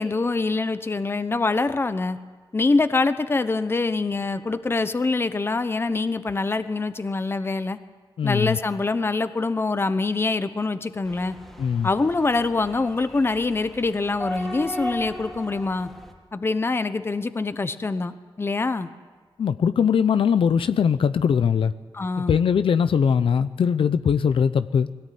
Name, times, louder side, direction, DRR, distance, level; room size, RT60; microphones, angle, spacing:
voice 1, 0.0-2.2 2.5-7.8 8.2-11.4 11.8-15.9 16.3-18.9 21.9-22.4, left 3 dB, 25° left, 0.9 m, -24 dB
voice 2, 8.2-8.6 11.6-11.9 19.4-21.7 22.3-24.9, left 7 dB, 70° left, 0.7 m, -21 dB
sound 1, 11.0-16.1, equal, 5° left, 2.5 m, -37 dB
22.0 x 17.5 x 9.4 m
wide cardioid pair, 150°, 9 cm